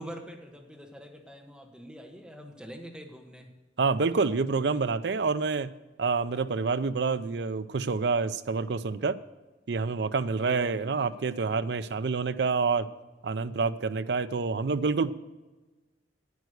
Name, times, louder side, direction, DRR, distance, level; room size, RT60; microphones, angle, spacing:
voice 1, 0.0-3.5 4.2-4.3 4.7-4.8 10.4-11.1, equal, 5° right, 2 dB, 1.4 m, -45 dB
voice 2, 3.8-5.7 6.0-9.2 9.7-12.9 13.2-15.1, right 4 dB, 75° right, 13 dB, 0.5 m, -27 dB
9.4 x 9.4 x 6.4 m, 1.2 s
head